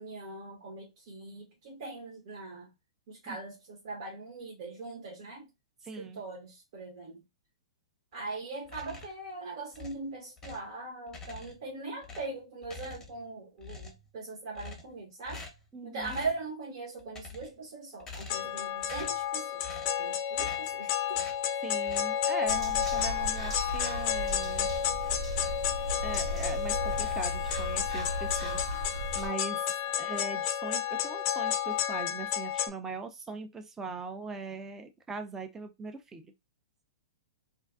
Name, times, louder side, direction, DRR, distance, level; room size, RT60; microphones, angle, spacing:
voice 1, 0.0-2.7 3.1-5.5 6.0-7.2 8.1-15.4 15.8-21.2 29.9-30.0, right 3 dB, 55° right, 0.9 m, -41 dB
voice 2, 5.8-6.2 15.7-16.1 21.6-24.8 26.0-28.8 29.1-29.7 30.0-36.3, right 4 dB, 15° right, 0.5 m, -41 dB
sound 1, 8.6-9.3 9.7-10.7 11.1-11.7 12.0-13.3 13.6-14.1 14.5-15.0 15.3-15.7 16.0-16.4 17.0-17.6 18.0-18.5 18.8-19.3 19.6-20.0 20.3-20.8 21.1-21.4 21.8-22.2 22.8-23.3 23.6-25.7 26.0-26.5 26.9-27.7, left 3 dB, 15° left, 0.8 m, -47 dB
sound 2, 18.3-32.7, left 10 dB, 40° left, 0.4 m, -31 dB
sound 3, 22.5-29.3, equal, 80° right, 1.2 m, -36 dB
2.5 x 2.2 x 2.3 m
hypercardioid pair, 120°, 3 cm